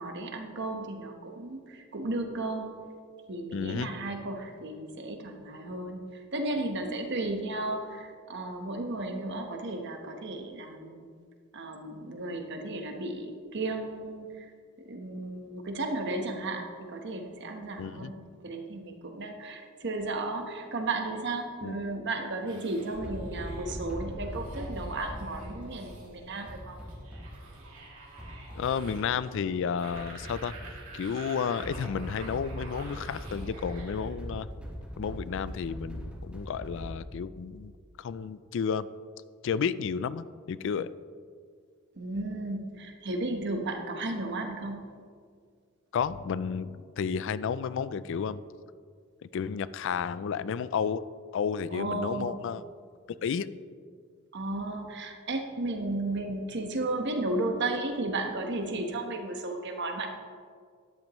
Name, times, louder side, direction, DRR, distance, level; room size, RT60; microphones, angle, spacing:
voice 1, 0.0-2.7 3.3-11.0 11.5-14.5 14.8-26.8 42.0-45.0 51.7-52.4 54.3-60.1, right 2 dB, 55° right, 4 dB, 1.1 m, -34 dB
voice 2, 3.5-3.9 17.8-18.1 21.6-21.8 28.5-30.5 30.9-34.5 35.0-37.7 38.0-38.9 39.4-40.9 45.9-48.4 49.2-51.0 51.3-52.6 53.1-53.5, left 6 dB, 65° left, 16 dB, 0.3 m, -32 dB
sound 1, 22.5-34.1, right 2 dB, 90° right, 2.7 m, -48 dB
sound 2, 22.9-37.0, equal, 5° right, 1.7 m, -41 dB
13.0 x 10.5 x 3.1 m, 2.1 s
head